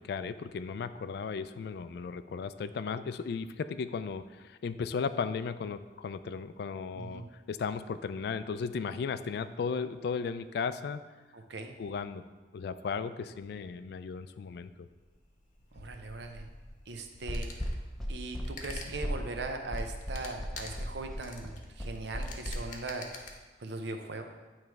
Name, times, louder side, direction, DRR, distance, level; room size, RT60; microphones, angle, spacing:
voice 1, 0.0-11.0 11.8-12.2 12.5-14.9, left 5 dB, 60° left, 13 dB, 0.3 m, -35 dB
voice 2, 6.9-7.3 11.3-11.8 15.7-16.5 16.9-17.5 18.1-23.1 23.6-24.2, right 3 dB, 70° right, 5 dB, 0.7 m, -40 dB
sound 1, 14.7-23.3, left 2 dB, 45° left, 0.8 m, -47 dB
sound 2, 17.3-22.6, equal, ahead, 0.6 m, -36 dB
9.0 x 3.2 x 4.6 m, 1.3 s
head